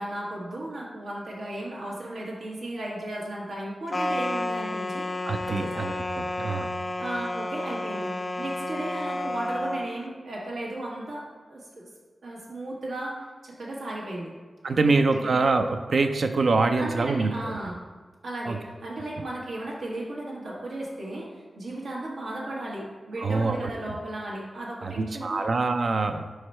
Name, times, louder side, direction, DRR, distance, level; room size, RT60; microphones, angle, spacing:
voice 1, 0.0-5.1 5.5-5.8 7.0-11.9 12.2-13.1 13.4-14.3 14.8-15.3 16.8-17.8 18.2-25.5, right 1 dB, 85° right, -4 dB, 1.4 m, -35 dB
sound 1, 3.9-9.9, left 1 dB, 35° left, 0.4 m, -31 dB
voice 2, 5.3-6.7 14.6-17.6 18.5-18.6 23.2-24.0 24.8-26.5, right 3 dB, 65° right, 7 dB, 0.4 m, -25 dB
4.8 x 4.5 x 4.3 m, 1.4 s
wide cardioid pair, 75°, 0 cm